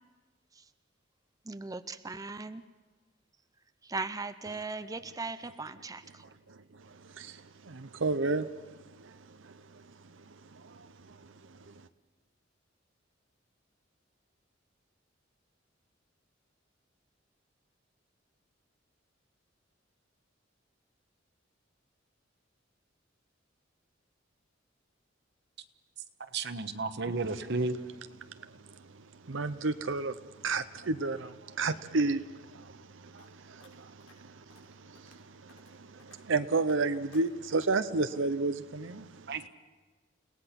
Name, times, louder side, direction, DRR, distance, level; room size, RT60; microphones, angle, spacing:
voice 1, 1.4-2.6 3.8-6.2, right 3 dB, 20° right, 0.6 m, -38 dB
voice 2, 6.5-9.9 10.2-11.7 28.4-28.9 29.2-39.5, right 3 dB, 80° right, 0.8 m, -33 dB
voice 3, 26.3-27.8 39.3-39.5, right 3 dB, 65° right, 1.2 m, -32 dB
sound 1, 33.2-33.3 33.6-33.7 34.0-34.1 34.5-34.6 34.9-35.2 35.5-35.7 36.0-36.2 36.6-36.8 37.1-37.3 37.6-37.8, left 3 dB, 90° left, 5.8 m, -58 dB
30.0 x 18.0 x 5.9 m
head